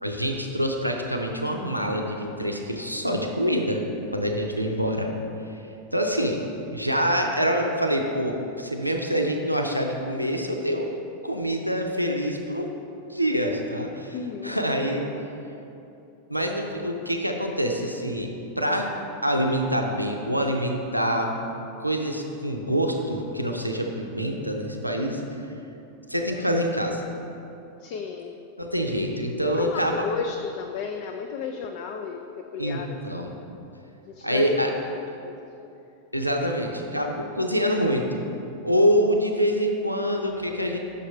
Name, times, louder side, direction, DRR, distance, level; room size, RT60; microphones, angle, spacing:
voice 1, 0.0-3.8 4.1-5.1 5.9-6.4 6.7-10.9 11.2-12.7 13.1-14.2 14.4-15.1 16.3-18.9 19.2-21.5 21.8-25.2 26.1-27.0 28.6-30.0 32.6-33.4 34.2-34.7 36.1-38.2 38.6-40.8, equal, 90° right, 2 dB, 0.5 m, -26 dB
voice 2, 14.1-14.6 27.8-28.4 29.5-33.3 34.1-34.6 35.2-35.4, left 6 dB, 50° left, 4 dB, 0.3 m, -33 dB
6.5 x 5.3 x 4.2 m, 2.8 s
figure-of-eight pair, 90°, 0 cm